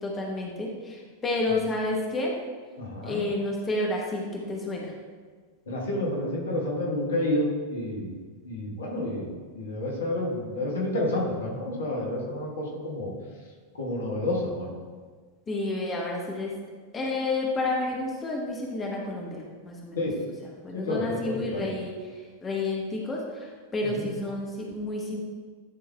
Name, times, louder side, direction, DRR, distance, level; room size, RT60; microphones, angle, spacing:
voice 1, 0.0-2.3 3.0-4.9 15.5-16.5 16.9-20.0 20.6-25.2, left 2 dB, 20° left, -1 dB, 1.1 m, -30 dB
voice 2, 2.8-3.2 5.7-8.2 8.4-9.3 9.5-13.1 13.7-14.7 19.9-20.2 20.7-21.7 23.8-24.1, left 1 dB, 65° left, -2 dB, 1.5 m, -29 dB
10.5 x 3.8 x 3.4 m, 1.5 s
figure-of-eight pair, 90°, 0 cm